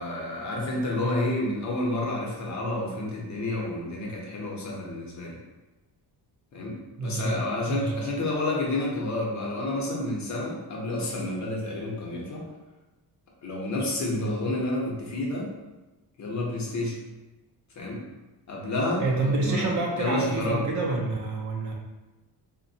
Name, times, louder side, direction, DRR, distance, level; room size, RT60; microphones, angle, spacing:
voice 1, 0.0-5.4 6.5-6.8 7.0-12.4 13.4-15.5 16.2-16.9 17.8-18.0 18.5-20.7, left 2 dB, 45° left, -3 dB, 0.8 m, -30 dB
voice 2, 7.0-7.4 7.7-8.0 14.1-14.4 19.0-21.7, right 2 dB, 45° right, -1 dB, 0.5 m, -28 dB
3.9 x 2.2 x 2.7 m, 1.1 s
cardioid pair, 170°, 40 cm